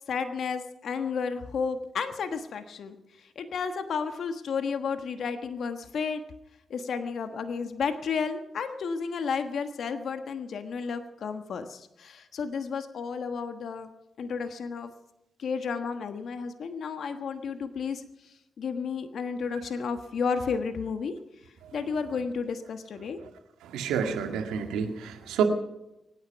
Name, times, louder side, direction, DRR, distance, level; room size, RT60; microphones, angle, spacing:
voice 1, 0.1-6.2 6.7-13.9 14.2-14.9 15.4-21.1 21.7-23.2, left 5 dB, 70° left, 8 dB, 1.3 m, -32 dB
voice 2, 23.6-25.4, right 7 dB, 85° right, 5 dB, 2.0 m, -29 dB
24.0 x 10.0 x 5.8 m, 0.91 s
supercardioid pair, 45°, 0 cm